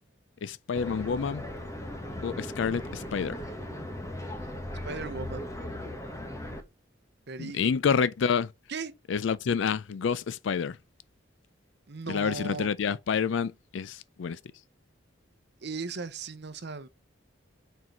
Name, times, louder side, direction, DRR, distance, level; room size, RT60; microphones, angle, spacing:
voice 1, 0.4-1.4 2.2-3.3 7.4-8.5 9.1-10.8 12.1-14.4, left 6 dB, 70° left, 0.4 m, -28 dB
sound 1, 0.7-6.6, left 1 dB, 15° left, 1.2 m, -38 dB
voice 2, 4.8-5.4 7.3-7.7 8.7-8.9 11.9-12.7 15.6-16.9, right 4 dB, 60° right, 0.8 m, -37 dB
6.1 x 4.6 x 5.2 m
head